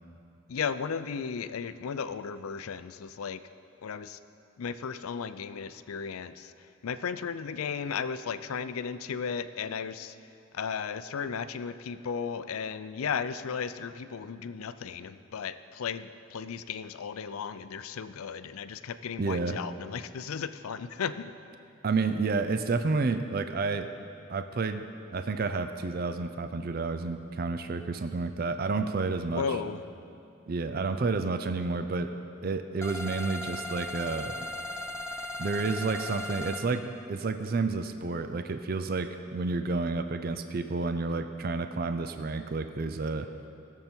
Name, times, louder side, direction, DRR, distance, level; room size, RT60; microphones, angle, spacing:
voice 1, 0.5-3.4 3.8-4.2 4.6-6.5 6.8-10.1 10.5-21.3 29.3-29.8, left 6 dB, 90° left, 12 dB, 0.5 m, -35 dB
voice 2, 19.2-19.6 21.8-23.9 24.3-24.8 25.1-29.4 30.5-32.1 32.4-34.3 35.4-43.3, right 3 dB, 45° right, 9 dB, 0.4 m, -30 dB
sound 1, 32.8-36.7, left 1 dB, 10° left, 0.6 m, -37 dB
19.5 x 7.1 x 4.4 m, 2.6 s
head